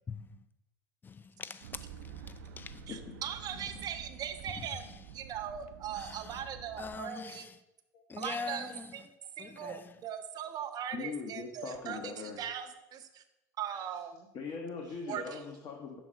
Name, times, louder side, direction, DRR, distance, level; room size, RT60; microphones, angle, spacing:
voice 1, 1.0-2.8 6.0-6.2 6.8-7.5 8.1-8.9 9.4-9.9, left 5 dB, 20° left, 0.4 m, -43 dB
sound 1, 1.6-7.0, right 7 dB, 85° right, 0.4 m, -49 dB
voice 2, 2.9-4.8 5.1-7.5 8.2-9.1 9.4-13.2 13.6-14.3 15.1-15.4, right 8 dB, 45° right, 0.6 m, -40 dB
voice 3, 10.9-12.4 13.7-13.8 14.3-16.0, left 5 dB, 50° left, 1.0 m, -41 dB
5.9 x 3.6 x 5.0 m
hypercardioid pair, 85°, 9 cm